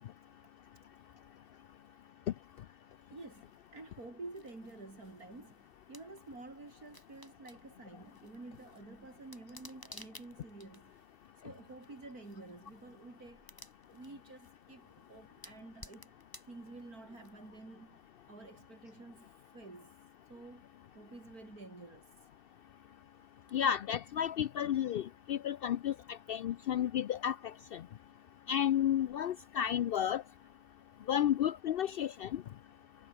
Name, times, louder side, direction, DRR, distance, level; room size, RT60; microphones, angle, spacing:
voice 1, 3.1-10.9 11.4-13.5 13.9-16.1 16.4-19.9 20.3-20.7 20.9-22.1 27.1-27.2 28.7-28.8 30.3-30.4 31.1-31.3, right 2 dB, 85° right, 5.5 m, -50 dB
sound 1, 3.2-17.7, left 1 dB, 15° left, 5.2 m, -58 dB
voice 2, 23.5-27.4 27.7-27.8 28.5-30.2 31.1-32.4, left 10 dB, 70° left, 0.5 m, -32 dB
omnidirectional pair, 1.5 m